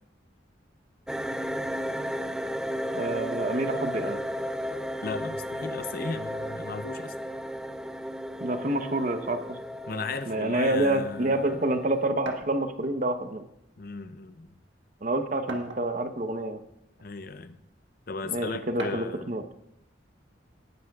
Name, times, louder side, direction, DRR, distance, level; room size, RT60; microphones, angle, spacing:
sound 1, 1.1-12.1, equal, 5° right, 0.3 m, -34 dB
voice 1, 2.9-4.2 8.4-9.6 10.3-13.4 15.0-16.6 18.3-19.4, right 1 dB, 40° right, 7 dB, 0.9 m, -28 dB
voice 2, 5.0-7.1 9.9-11.6 13.8-14.5 17.0-17.6 18.1-19.3, left 4 dB, 50° left, 12 dB, 0.6 m, -36 dB
sound 2, 12.3-12.5 13.7-13.8 14.2-14.3 15.5-16.1 17.0-17.1 18.8-19.2, right 2 dB, 75° right, 1.4 m, -38 dB
18.5 x 11.0 x 2.4 m, 0.81 s
head